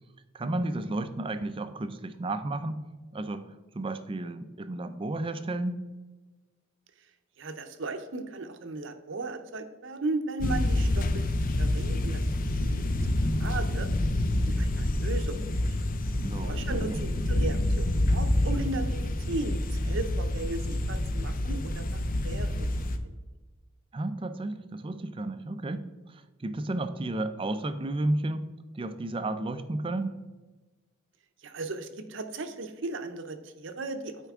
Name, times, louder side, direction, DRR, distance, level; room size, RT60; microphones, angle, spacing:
voice 1, 0.3-2.8 3.1-5.9 16.2-17.0 23.9-28.5 28.7-30.1, right 2 dB, 25° right, 10 dB, 0.4 m, -33 dB
voice 2, 7.4-13.1 13.4-13.9 14.4-15.4 15.7-15.8 16.4-22.7 23.0-23.2 31.4-34.3, right 2 dB, 60° right, 8 dB, 0.7 m, -36 dB
sound 1, 10.4-23.0, left 1 dB, 45° left, 0.5 m, -27 dB
9.1 x 4.6 x 3.6 m, 1.2 s
head